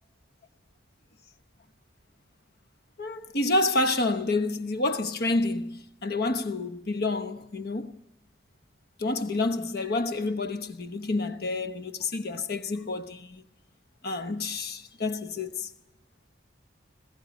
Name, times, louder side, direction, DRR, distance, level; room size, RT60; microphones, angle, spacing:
voice 1, 3.0-7.9 9.0-13.4 14.0-15.7, left 2 dB, 50° left, 1.0 m, -29 dB
20.5 x 16.0 x 9.1 m
head